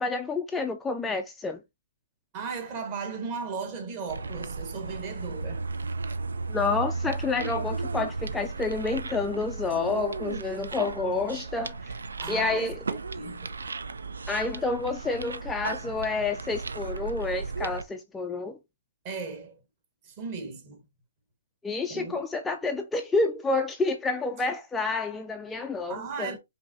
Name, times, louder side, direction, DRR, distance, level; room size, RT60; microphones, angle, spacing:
voice 1, 0.0-1.6 6.5-11.9 12.3-13.0 14.3-18.6 21.6-26.4, left 3 dB, 10° left, 0.3 m, -29 dB
voice 2, 2.3-5.6 12.2-12.8 13.1-13.5 19.0-19.6 20.0-20.8 21.9-22.2 25.9-26.4, right 5 dB, 30° right, 1.3 m, -36 dB
sound 1, 4.1-17.8, right 4 dB, 85° right, 0.5 m, -35 dB
5.2 x 2.7 x 2.6 m
hypercardioid pair, 145°, 0 cm